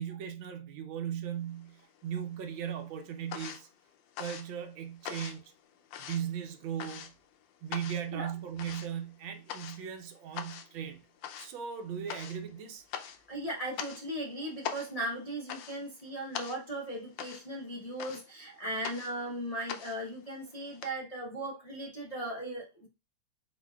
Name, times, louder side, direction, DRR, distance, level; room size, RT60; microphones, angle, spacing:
voice 1, 0.0-3.7 4.2-5.4 6.0-7.1 7.6-11.0 11.4-12.8, right 8 dB, 90° right, 1.5 m, -38 dB
sound 1, 1.5-2.3 2.6-20.9, left 9 dB, 80° left, 1.3 m, -43 dB
voice 2, 13.3-22.9, right 1 dB, 35° left, 0.6 m, -37 dB
4.4 x 4.1 x 2.3 m
omnidirectional pair, 2.1 m